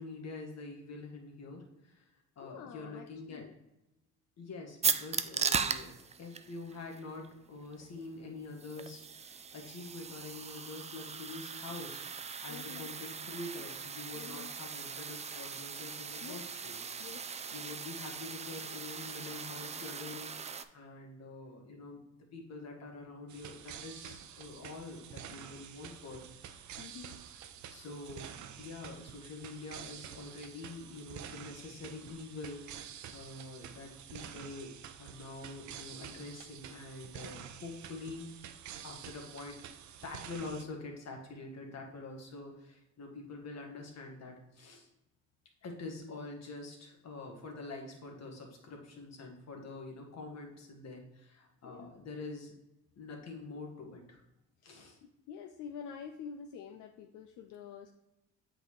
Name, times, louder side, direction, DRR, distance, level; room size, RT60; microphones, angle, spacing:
voice 1, 0.0-2.1 2.4-3.5 4.4-5.9 6.2-12.0 12.4-16.9 17.5-22.0 22.3-26.6 27.7-28.3 28.6-38.5 38.8-39.6 40.0-44.9 45.6-52.5 53.0-54.2 54.6-55.0, left 3 dB, 60° left, 1 dB, 1.6 m, -46 dB
voice 2, 2.4-3.5 12.5-12.9 14.1-14.5 16.2-16.4 17.0-17.2 26.8-27.2 51.6-51.9 55.3-57.9, left 7 dB, 85° left, 4 dB, 0.5 m, -47 dB
sound 1, 4.8-20.6, right 6 dB, 25° right, 0.3 m, -39 dB
sound 2, 23.3-40.6, right 9 dB, 70° right, 0.6 m, -48 dB
8.0 x 3.9 x 3.1 m, 0.94 s
cardioid pair, 90°, 30 cm